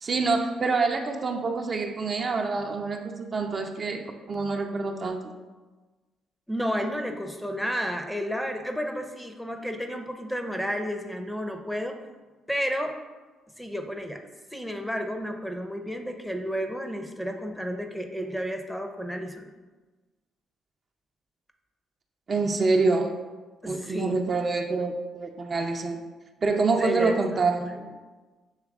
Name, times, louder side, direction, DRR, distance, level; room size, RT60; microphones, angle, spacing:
voice 1, 0.0-5.2 22.3-23.1 23.7-26.0 26.4-27.7, right 3 dB, 45° right, 3 dB, 0.5 m, -26 dB
voice 2, 6.5-12.0 12.5-13.0 13.6-14.2 14.5-19.5 23.6-24.2 26.8-27.8, equal, 5° left, 5 dB, 0.6 m, -31 dB
7.2 x 3.1 x 2.4 m, 1.3 s
hypercardioid pair, 55°, 0 cm